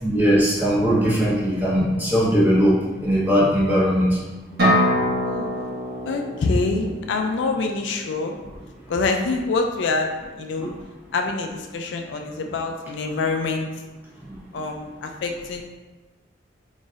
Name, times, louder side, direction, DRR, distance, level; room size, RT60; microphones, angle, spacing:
voice 1, 0.0-4.2 10.6-10.7, equal, 10° right, -8 dB, 1.1 m, -19 dB
sound 1, 4.6-8.3, equal, 55° right, 1.4 m, -25 dB
voice 2, 6.1-8.3 8.9-10.1 10.4-10.7 11.1-13.7 14.5-15.6, left 3 dB, 65° left, 4 dB, 0.4 m, -25 dB
3.9 x 3.9 x 2.5 m, 1.2 s
head